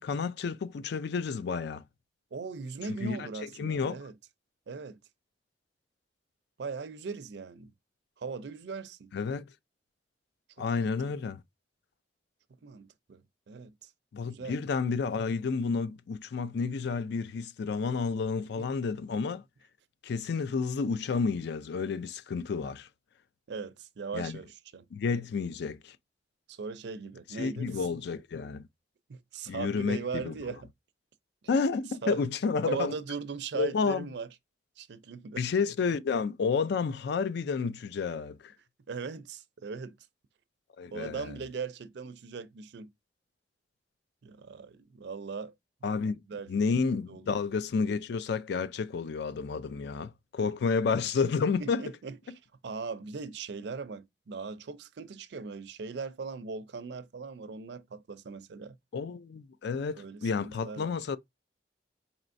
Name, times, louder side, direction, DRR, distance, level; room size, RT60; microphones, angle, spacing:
voice 1, 0.0-1.8 3.0-3.3 3.6-4.0 9.1-9.5 10.6-11.4 14.1-19.4 20.0-22.9 24.1-24.3 24.9-26.0 27.4-28.7 29.5-30.3 31.5-32.9 33.5-34.0 35.4-38.5 40.8-41.3 45.8-46.2 46.5-51.8 58.9-61.2, left 5 dB, 65° left, 0.4 m, -30 dB
voice 2, 2.3-4.1 4.7-5.0 6.6-7.7 8.2-9.1 10.6-11.2 12.6-13.2 13.5-13.9 14.2-14.6 18.6-18.7 23.5-24.9 26.5-27.8 29.1-30.6 32.0-32.2 32.6-34.3 34.8-35.4 38.9-40.0 40.9-42.9 44.2-45.5 45.8-46.5 47.1-47.3 51.6-52.2 52.6-58.8 59.9-60.9, right 5 dB, 70° right, 0.5 m, -39 dB
4.3 x 3.0 x 2.5 m
head